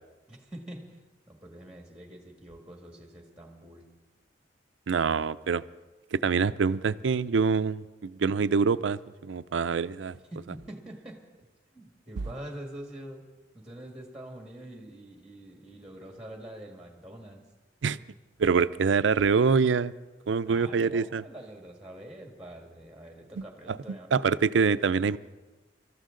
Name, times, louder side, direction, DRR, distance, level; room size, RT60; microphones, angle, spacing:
voice 1, 0.3-3.9 10.3-11.5 11.7-13.3 13.5-17.4 20.4-24.2, right 1 dB, 5° right, 3 dB, 1.7 m, -45 dB
voice 2, 4.9-5.6 6.1-10.2 17.8-18.0 18.4-19.9 20.3-21.2 23.7-23.8 24.1-25.2, right 5 dB, 85° right, 14 dB, 0.5 m, -25 dB
25.5 x 13.5 x 3.8 m, 1.2 s
head